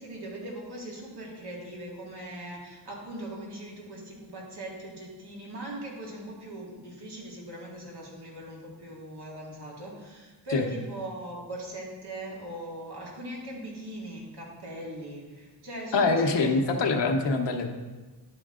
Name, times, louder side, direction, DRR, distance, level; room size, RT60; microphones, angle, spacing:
voice 1, 0.0-16.8, right 1 dB, 65° right, -3 dB, 2.2 m, -40 dB
voice 2, 15.9-17.7, left 3 dB, 80° left, 3 dB, 0.9 m, -24 dB
11.0 x 4.5 x 3.7 m, 1.3 s
cardioid pair, 60°, 42 cm